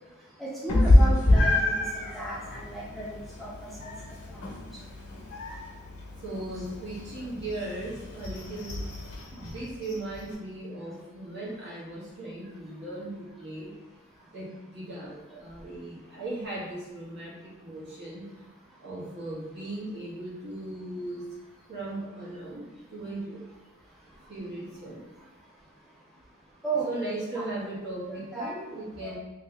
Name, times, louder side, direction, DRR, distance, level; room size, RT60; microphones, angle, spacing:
voice 1, 0.4-3.7 26.6-26.9 27.3-27.5 28.1-28.5 29.0-29.2, right 2 dB, ahead, -6 dB, 0.4 m, -34 dB
Meow, 0.7-10.3, left 1 dB, 70° left, 1.1 m, -27 dB
voice 2, 6.2-8.8 9.3-13.7 14.3-14.5 14.7-17.4 17.6-18.2 18.8-21.2 21.7-23.4 24.3-25.0 26.9-29.2, right 2 dB, 50° right, -8 dB, 1.4 m, -37 dB
3.2 x 2.9 x 3.3 m, 1.1 s
head